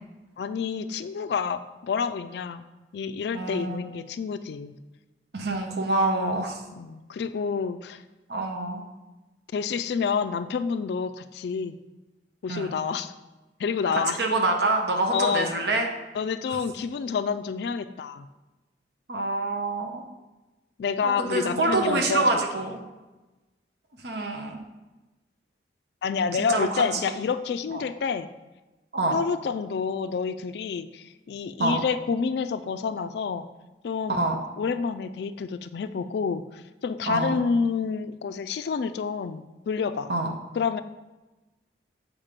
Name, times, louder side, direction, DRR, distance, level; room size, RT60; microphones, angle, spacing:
voice 1, 0.4-2.7 2.9-4.7 6.8-8.0 9.5-11.8 12.4-13.1 13.6-14.2 15.1-15.5 16.1-18.3 20.8-22.3 26.0-28.3 29.1-33.4 33.8-34.3 34.6-40.1 40.6-40.8, left 5 dB, 65° left, 11 dB, 0.3 m, -28 dB
voice 2, 3.3-3.8 5.3-6.6 8.3-8.8 12.5-12.7 13.9-15.9 16.5-16.6 19.1-20.1 21.0-22.8 24.0-24.6 26.4-27.1 27.7-27.8 28.9-29.2 31.6-31.7 34.1-34.4 37.1-37.4 40.1-40.3, right 2 dB, 70° right, 2 dB, 0.9 m, -26 dB
7.3 x 4.8 x 5.1 m, 1.1 s
head